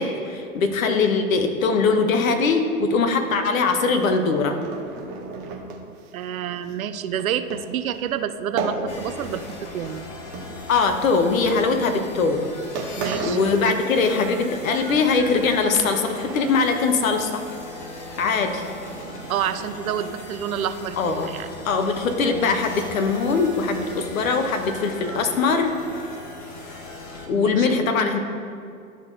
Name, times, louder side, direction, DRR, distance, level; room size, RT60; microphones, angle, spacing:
voice 1, 0.0-4.6 10.7-12.5 13.2-17.4 18.2-18.7 21.0-21.3 21.6-25.7 27.3-28.2, left 4 dB, 65° left, 6 dB, 0.9 m, -21 dB
sound 1, 3.3-9.5 9.7-11.2 11.9-12.1 12.5-12.6 12.8-14.4 14.7-16.0 16.2-16.8 17.1-17.2 17.6-20.1, right 3 dB, 30° right, 0.8 m, -36 dB
voice 2, 6.1-10.0 13.0-13.4 19.3-21.5 27.3-27.8, right 9 dB, 70° right, 11 dB, 0.5 m, -28 dB
sound 2, 8.9-27.3, left 2 dB, 25° left, 0.6 m, -38 dB
11.0 x 3.8 x 2.6 m, 2.4 s
hypercardioid pair, 115°, 44 cm